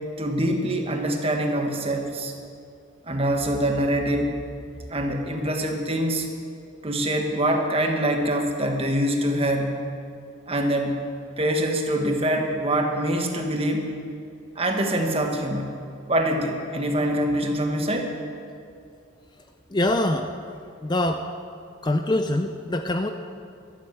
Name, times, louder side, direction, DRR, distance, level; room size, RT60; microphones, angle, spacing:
voice 1, 0.2-2.3 3.1-4.4 4.9-6.3 6.8-9.8 10.5-11.0 11.4-13.9 14.5-15.8 16.1-18.1, right 1 dB, 30° right, 3 dB, 1.5 m, -24 dB
voice 2, 19.7-20.3 20.8-21.2 21.8-23.1, left 1 dB, 20° left, 6 dB, 0.5 m, -24 dB
12.5 x 12.5 x 7.8 m, 2.5 s
head